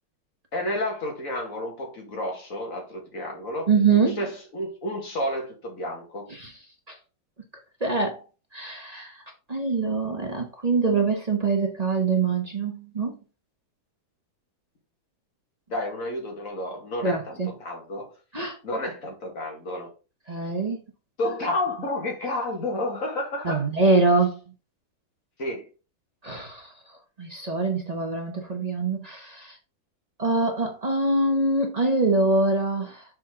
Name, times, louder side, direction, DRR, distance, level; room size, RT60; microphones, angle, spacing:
voice 1, 0.5-3.7 4.2-6.3 15.7-18.1 18.6-19.9 21.2-23.6 25.4-25.7, left 1 dB, 45° left, 2.0 m, -31 dB
voice 2, 3.7-4.2 6.3-6.5 6.9-7.0 7.8-8.2 8.5-13.2 17.0-17.5 18.3-18.6 20.3-20.8 23.4-24.4 26.2-26.7 27.2-29.6 30.2-33.0, right 3 dB, 35° right, 0.6 m, -24 dB
6.3 x 4.3 x 3.6 m
omnidirectional pair, 2.2 m